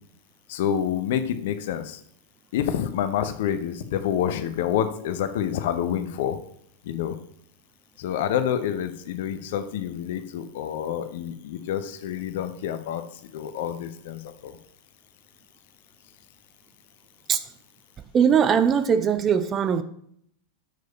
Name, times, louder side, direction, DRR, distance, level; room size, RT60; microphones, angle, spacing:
voice 1, 0.5-2.0 2.5-6.4 6.9-7.1 8.0-13.0 13.3-14.6, left 9 dB, 55° left, 10 dB, 0.7 m, -28 dB
voice 2, 18.1-19.8, right 7 dB, 25° right, 12 dB, 0.5 m, -20 dB
6.8 x 4.7 x 5.3 m, 0.68 s
figure-of-eight pair, 90°, 0 cm